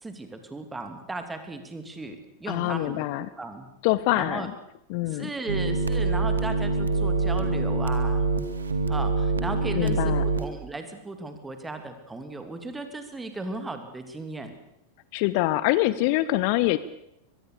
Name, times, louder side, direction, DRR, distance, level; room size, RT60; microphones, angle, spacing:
voice 1, 0.0-3.0 3.4-3.7 4.1-4.5 5.1-8.3 8.9-14.5, right 2 dB, 10° right, 7 dB, 3.0 m, -36 dB
voice 2, 2.5-3.3 3.8-4.5 4.9-5.3 9.8-10.2 15.1-16.8, left 17 dB, 45° left, 16 dB, 0.8 m, -24 dB
sound 1, 5.5-10.4, right 3 dB, 70° right, 2.3 m, -25 dB
23.0 x 22.0 x 6.9 m, 0.78 s
figure-of-eight pair, 90°, 0 cm